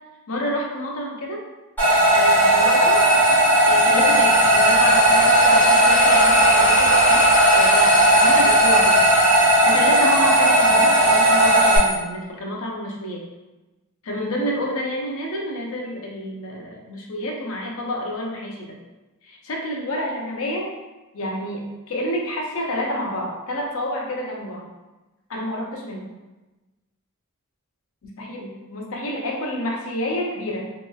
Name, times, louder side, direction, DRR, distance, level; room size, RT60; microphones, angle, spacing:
voice 1, 0.3-1.4 2.1-3.0 3.6-7.2 7.5-9.0 9.5-13.2 14.0-18.8 19.2-20.7 21.1-24.7 25.3-26.2 28.0-30.7, equal, 65° left, -1 dB, 0.5 m, -29 dB
sound 1, 1.8-11.8, right 1 dB, 10° left, 1.3 m, -16 dB
sound 2, 2.9-12.0, right 4 dB, 75° right, 0.6 m, -29 dB
2.9 x 2.9 x 2.3 m, 1.1 s
head